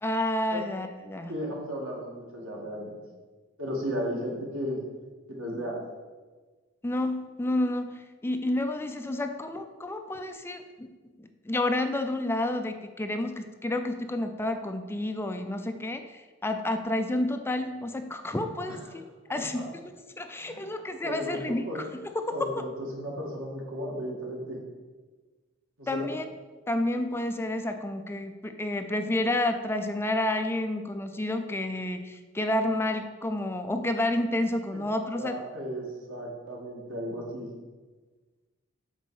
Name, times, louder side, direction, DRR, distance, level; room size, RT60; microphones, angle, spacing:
voice 1, 0.0-1.3 6.8-10.9 11.2-19.0 19.3-22.7 25.9-26.3 26.7-35.4, left 1 dB, 10° left, 7 dB, 0.4 m, -30 dB
voice 2, 1.3-3.0 3.6-4.8 5.3-5.8 18.7-19.6 20.4-20.7 21.0-21.9 22.3-24.6 25.8-26.1 34.7-34.8 35.2-37.5, equal, 90° right, -2 dB, 2.2 m, -35 dB
8.1 x 4.2 x 6.4 m, 1.3 s
head